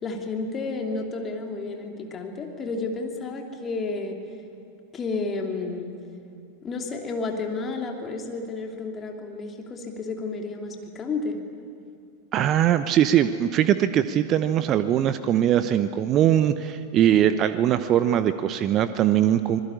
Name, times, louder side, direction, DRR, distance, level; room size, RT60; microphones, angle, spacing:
voice 1, 0.0-4.2 4.9-5.9 6.6-11.4, left 3 dB, 25° left, 3 dB, 3.0 m, -31 dB
voice 2, 12.3-19.6, right 10 dB, 35° right, 12 dB, 0.9 m, -21 dB
26.0 x 21.0 x 10.0 m, 2.5 s
figure-of-eight pair, 90°, 0 cm